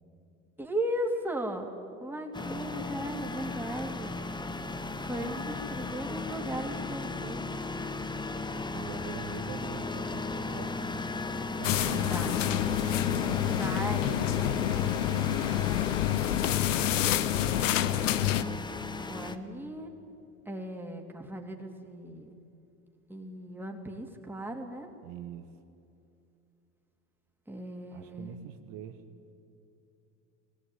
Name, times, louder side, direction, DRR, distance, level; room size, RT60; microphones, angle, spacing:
voice 1, 0.6-1.7 2.0-4.1 5.1-7.4 12.1-12.5 13.6-14.4 18.2-18.6 19.1-19.9 20.5-22.3 23.1-24.9 27.5-28.4, right 1 dB, 5° right, 2 dB, 3.1 m, -36 dB
sound 1, 2.3-19.4, left 3 dB, 10° left, 1.1 m, -36 dB
voice 2, 8.7-11.1 11.6-12.1 13.3-15.3 25.0-25.5 27.9-29.0, right 9 dB, 65° right, 6 dB, 1.5 m, -44 dB
sound 2, 11.6-18.4, left 13 dB, 85° left, 0.8 m, -28 dB
18.5 x 17.5 x 9.4 m, 2.6 s
hypercardioid pair, 75°, 37 cm